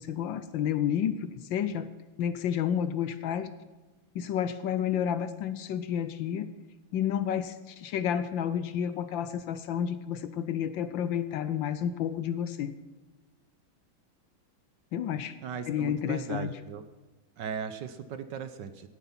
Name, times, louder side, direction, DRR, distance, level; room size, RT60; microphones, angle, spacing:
voice 1, 0.0-1.9 2.2-3.5 4.1-6.5 6.9-12.7 14.9-15.3 15.7-16.5, left 9 dB, 70° left, 13 dB, 1.3 m, -30 dB
voice 2, 15.4-16.8 17.4-18.9, right 7 dB, 65° right, 11 dB, 1.3 m, -37 dB
17.0 x 9.4 x 5.8 m, 1.2 s
omnidirectional pair, 2.3 m